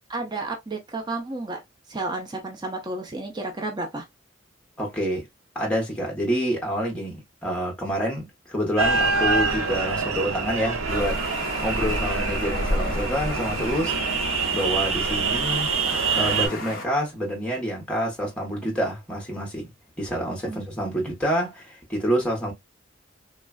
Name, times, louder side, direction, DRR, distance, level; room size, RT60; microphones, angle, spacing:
voice 1, 0.1-1.6 1.9-4.0 20.5-20.6, right 2 dB, 20° right, 0.5 m, -31 dB
voice 2, 4.8-5.2 5.5-11.2 11.6-13.9 14.5-15.7 16.1-19.7 20.0-22.5, equal, 5° left, 0.9 m, -27 dB
sound 1, 8.8-16.5, right 4 dB, 85° right, 0.6 m, -25 dB
sound 2, 10.9-16.8, left 2 dB, 45° left, 0.7 m, -35 dB
3.1 x 2.4 x 2.3 m
head